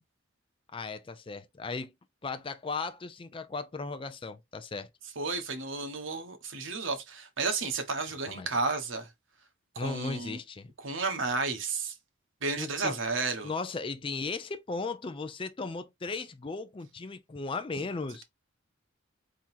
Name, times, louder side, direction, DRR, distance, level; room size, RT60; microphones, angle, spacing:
voice 1, 0.7-1.9 2.2-4.9 8.3-8.5 9.8-10.7 12.6-12.9 13.4-18.2, left 4 dB, 25° left, 0.4 m, -36 dB
voice 2, 5.2-9.1 9.7-10.4 10.8-11.9 12.4-13.5, right 3 dB, 80° right, 1.1 m, -32 dB
3.7 x 2.9 x 4.2 m
head